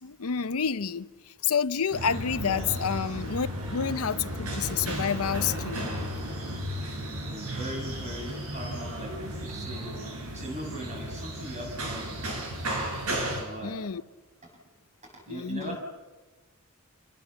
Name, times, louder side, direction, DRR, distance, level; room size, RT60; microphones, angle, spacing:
voice 1, 0.0-5.9 13.6-14.0 15.3-15.8, left 7 dB, 80° left, 0.7 m, -29 dB
sound 1, 1.9-13.4, right 1 dB, 90° right, 6.3 m, -34 dB
voice 2, 7.2-9.2 9.4-10.0 10.3-12.3 13.0-13.8 15.0-15.8, right 1 dB, 35° right, 7.2 m, -40 dB
28.5 x 20.5 x 7.1 m
head